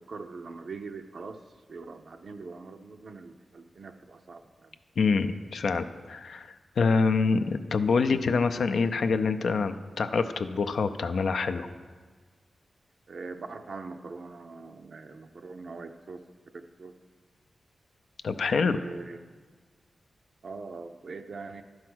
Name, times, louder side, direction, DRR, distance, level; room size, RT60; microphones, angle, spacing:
voice 1, 0.1-1.4 1.7-4.8 13.1-16.2 16.5-17.0 18.6-19.2 20.4-21.6, right 4 dB, 60° right, 6 dB, 0.5 m, -42 dB
voice 2, 5.0-11.7 18.2-18.8, left 4 dB, 75° left, 8 dB, 0.4 m, -26 dB
11.0 x 4.7 x 6.1 m, 1.5 s
wide cardioid pair, 100°, 0 cm